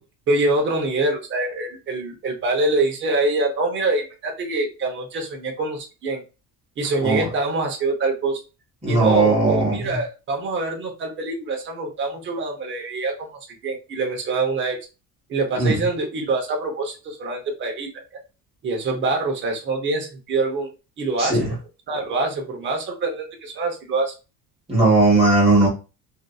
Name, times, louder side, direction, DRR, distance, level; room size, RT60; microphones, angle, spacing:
voice 1, 0.3-6.2 6.8-8.4 8.9-13.3 13.6-14.8 15.3-18.0 18.6-20.7 21.0-21.6 21.9-24.1, right 2 dB, 30° right, 2 dB, 0.7 m, -25 dB
voice 2, 8.8-9.8 15.5-15.8 21.2-21.5 24.7-25.7, right 2 dB, 15° right, -5 dB, 1.3 m, -17 dB
2.6 x 2.5 x 2.2 m, 0.30 s
cardioid pair, 170°, 37 cm